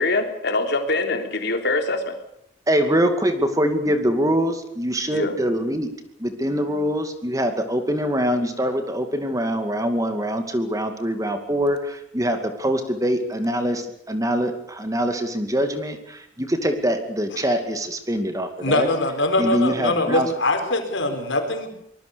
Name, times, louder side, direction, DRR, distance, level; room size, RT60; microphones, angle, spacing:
voice 1, 0.0-2.2 5.1-5.3, left 2 dB, 60° left, 5 dB, 3.5 m, -23 dB
voice 2, 2.7-5.9 6.2-18.9 19.4-20.3, equal, 20° right, 7 dB, 2.4 m, -24 dB
voice 3, 18.6-21.7, left 2 dB, 85° left, 5 dB, 4.9 m, -22 dB
25.0 x 20.0 x 7.0 m, 0.71 s
head